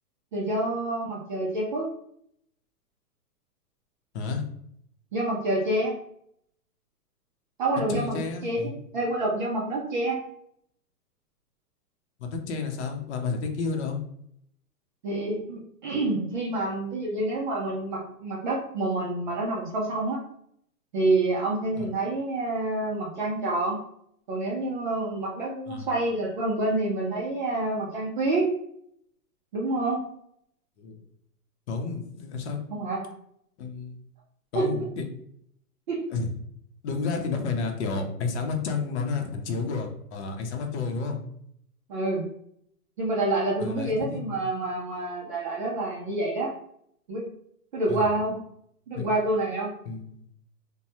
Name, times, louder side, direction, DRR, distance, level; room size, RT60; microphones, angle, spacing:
voice 1, 0.3-1.9 5.1-5.9 7.6-8.6 8.9-10.2 15.0-20.2 20.9-23.8 24.3-28.5 29.5-30.0 32.7-33.1 34.5-34.7 35.9-36.0 41.9-42.3 43.0-46.5 47.1-47.3 47.7-48.4 48.9-49.7, right 2 dB, 35° right, -4 dB, 0.5 m, -27 dB
voice 2, 7.9-8.8 12.2-14.0 25.7-25.9 30.8-31.0 31.7-32.6 33.6-33.9 34.5-35.0 36.1-36.3 36.8-41.2 43.6-44.4 47.9-48.0 48.9-49.1 49.8-50.2, left 4 dB, 45° left, 3 dB, 0.7 m, -31 dB
3.0 x 2.2 x 2.7 m, 0.70 s
hypercardioid pair, 140°, 46 cm